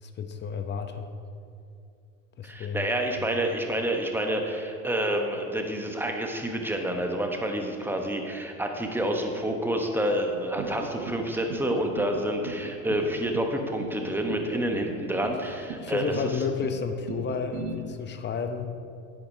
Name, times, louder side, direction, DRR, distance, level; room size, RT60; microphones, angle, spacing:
voice 1, 0.0-1.1 2.4-2.9 3.2-3.3 15.8-18.7, left 6 dB, 25° left, 7 dB, 0.6 m, -31 dB
voice 2, 2.4-16.0, right 1 dB, 5° right, 3 dB, 0.9 m, -28 dB
sound 1, 10.6-11.2 11.5-12.1 12.4-13.1 13.3-14.0 14.3-14.9 15.2-15.8 16.1-16.8 17.1-17.7, right 6 dB, 85° right, 1.1 m, -37 dB
11.0 x 8.5 x 2.7 m, 2.4 s
supercardioid pair, 100°, 39 cm